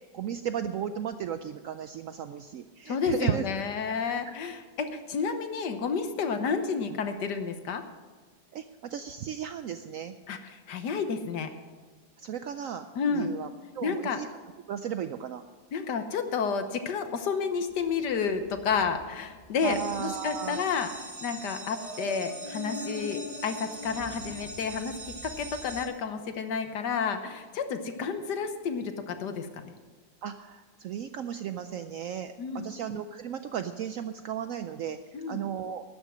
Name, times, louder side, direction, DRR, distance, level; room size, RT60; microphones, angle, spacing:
voice 1, 0.1-3.4 8.5-10.1 12.2-12.9 13.1-13.5 13.7-14.3 14.7-15.4 19.6-20.7 30.2-35.0 35.3-35.8, right 9 dB, 80° right, 9 dB, 0.7 m, -35 dB
voice 2, 2.9-7.8 10.3-11.5 12.9-13.3 13.8-14.2 15.7-20.9 21.2-29.7 32.4-32.7 35.1-35.5, left 5 dB, 65° left, 8 dB, 1.6 m, -31 dB
sound 1, 17.7-25.9, left 1 dB, 20° left, 1.4 m, -44 dB
sound 2, 19.6-25.9, right 2 dB, 20° right, 1.2 m, -43 dB
12.5 x 10.0 x 6.2 m, 1.5 s
omnidirectional pair, 2.0 m